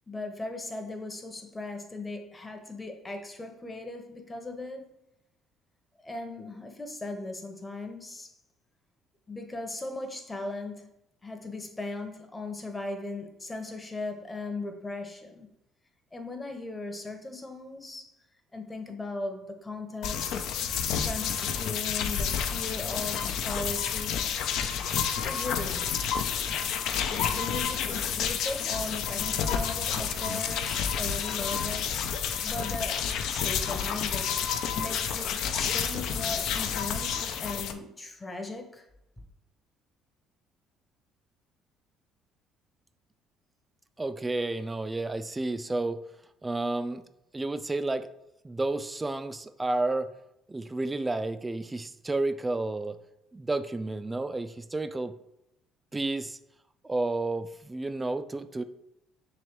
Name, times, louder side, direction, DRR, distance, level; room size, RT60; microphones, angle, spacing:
voice 1, 0.1-5.0 6.0-8.3 9.3-10.9 11.2-15.5 16.1-18.1 18.5-20.5 21.0-24.4 25.2-26.3 26.7-31.9 32.2-34.3 34.7-38.9 39.2-39.3, left 2 dB, 20° left, 5 dB, 0.8 m, -38 dB
sound 1, 20.0-37.7, left 7 dB, 70° left, 0.4 m, -30 dB
voice 2, 44.0-46.0 46.4-47.0 47.3-48.1 48.4-50.1 50.5-53.0 53.3-55.1 55.9-56.4 56.8-58.6, right 2 dB, 20° right, 11 dB, 0.3 m, -31 dB
3.2 x 3.0 x 4.4 m, 0.84 s
supercardioid pair, 80°, 0 cm